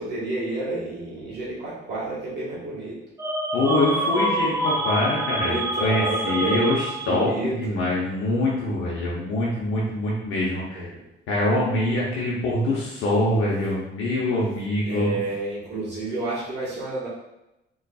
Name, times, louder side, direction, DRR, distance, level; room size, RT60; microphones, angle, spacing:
voice 1, 0.0-3.0 5.4-7.8 10.7-11.0 14.8-17.1, right 2 dB, 60° right, -7 dB, 1.4 m, -30 dB
sound 1, 3.2-7.4, right 1 dB, 15° right, 0.5 m, -26 dB
voice 2, 3.5-5.5 5.8-10.9 11.3-15.2, left 1 dB, 90° left, -5 dB, 0.8 m, -24 dB
3.9 x 3.1 x 2.3 m, 0.90 s
cardioid pair, 90°, 20 cm